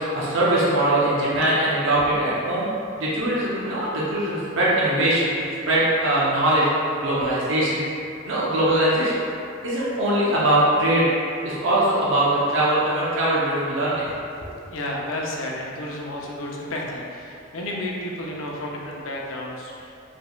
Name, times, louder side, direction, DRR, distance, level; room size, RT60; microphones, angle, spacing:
voice 1, 0.0-2.7 3.0-5.3 5.7-6.7 7.0-7.8 8.2-9.2 9.6-11.1 11.4-14.0 14.3-14.5, right 1 dB, 65° right, -7 dB, 0.7 m, -21 dB
voice 2, 14.7-19.9, left 1 dB, 70° left, -2 dB, 0.6 m, -31 dB
5.0 x 3.5 x 2.4 m, 2.6 s
head